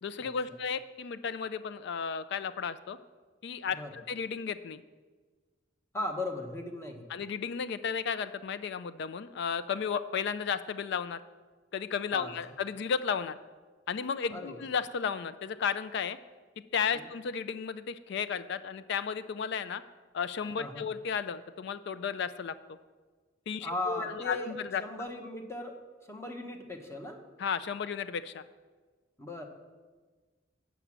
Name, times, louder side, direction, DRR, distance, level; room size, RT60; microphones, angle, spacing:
voice 1, 0.0-3.0 3.4-4.8 7.1-11.2 11.7-13.4 13.9-16.2 16.7-19.8 20.1-22.6 23.5-24.8 27.4-28.4, left 6 dB, 65° left, 13 dB, 0.4 m, -33 dB
voice 2, 5.9-7.0 12.1-12.3 14.3-14.6 16.9-17.1 20.6-20.9 23.6-24.5 24.8-25.8 26.1-27.2 29.2-29.4, left 2 dB, 15° left, 3 dB, 1.0 m, -37 dB
8.0 x 5.9 x 7.3 m, 1.4 s
head